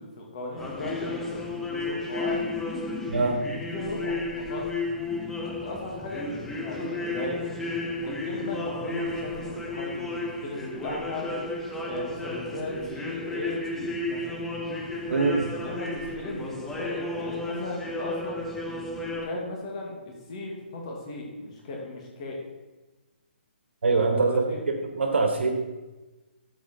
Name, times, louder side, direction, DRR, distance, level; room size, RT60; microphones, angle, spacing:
voice 1, 0.0-2.4 3.7-4.7 5.4-7.4 7.9-11.3 11.7-14.4 15.5-20.0 20.3-22.4 23.9-24.6, left 2 dB, 30° left, -1 dB, 2.2 m, -36 dB
sound 1, 0.6-19.3, left 2 dB, 5° left, 0.5 m, -33 dB
voice 2, 3.1-3.4 15.1-15.5 23.8-25.5, right 3 dB, 80° right, 4 dB, 1.9 m, -24 dB
11.5 x 7.1 x 4.4 m, 1.1 s
hypercardioid pair, 170°, 6 cm